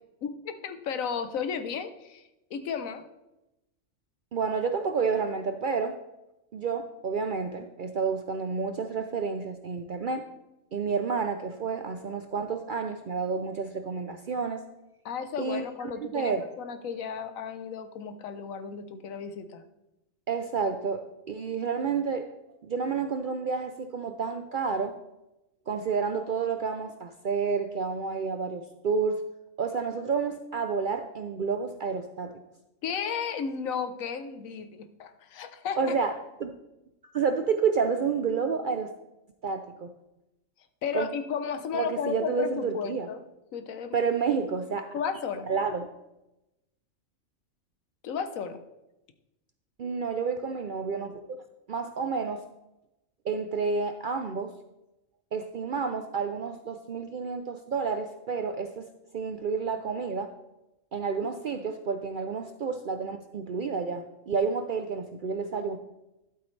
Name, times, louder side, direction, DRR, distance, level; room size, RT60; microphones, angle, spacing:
voice 1, 0.2-2.2 2.5-3.0 15.0-19.6 32.8-35.9 40.8-43.2 43.5-44.0 44.9-45.5 48.0-48.6, left 6 dB, 80° left, 9 dB, 1.2 m, -34 dB
voice 2, 4.3-6.0 6.5-10.3 10.7-14.6 15.4-16.4 20.3-22.3 22.6-25.0 25.7-29.2 29.6-32.3 35.8-36.1 36.4-36.5 37.0-38.9 39.4-39.9 40.9-41.1 41.7-43.1 43.9-44.9 45.5-45.9 49.8-51.2 51.7-52.4 53.2-54.5 55.3-58.9 59.1-60.3 60.9-65.8, right 5 dB, 60° right, 7 dB, 0.5 m, -30 dB
12.0 x 8.2 x 3.2 m, 0.94 s
omnidirectional pair, 1.4 m